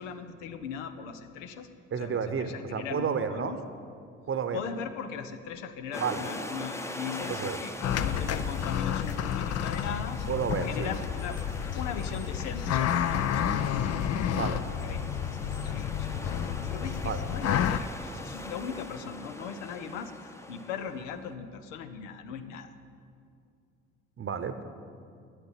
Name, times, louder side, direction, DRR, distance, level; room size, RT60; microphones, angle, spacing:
voice 1, 0.0-1.7 2.0-3.6 4.5-10.2 10.6-11.4 11.7-13.9 14.8-15.0 15.6-16.4 16.7-22.7, left 6 dB, 75° left, 9 dB, 0.8 m, -39 dB
voice 2, 1.9-3.5 4.3-4.6 6.0-6.2 7.3-7.6 10.3-10.9 14.3-14.6 17.0-17.2 24.2-24.6, right 6 dB, 35° right, 10 dB, 0.9 m, -31 dB
sound 1, 5.9-21.3, left 1 dB, 5° left, 0.8 m, -42 dB
sound 2, 7.8-17.8, left 9 dB, 40° left, 0.6 m, -30 dB
9.0 x 8.1 x 9.0 m, 2.4 s
hypercardioid pair, 50°, 38 cm